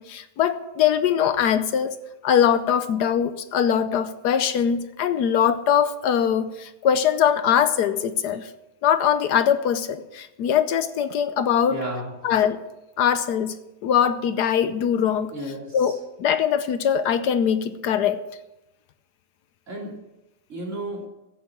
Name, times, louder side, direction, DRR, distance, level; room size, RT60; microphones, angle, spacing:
voice 1, 0.0-1.9 2.2-8.5 8.8-11.8 12.2-12.6 13.0-13.6 13.8-15.3 15.7-15.9 16.2-18.2, left 8 dB, 75° left, 1.3 m, -22 dB
voice 2, 11.7-12.1 15.3-16.0 19.7-20.0 20.5-21.0, right 1 dB, 45° right, 3.6 m, -33 dB
14.5 x 8.2 x 7.3 m
omnidirectional pair, 1.8 m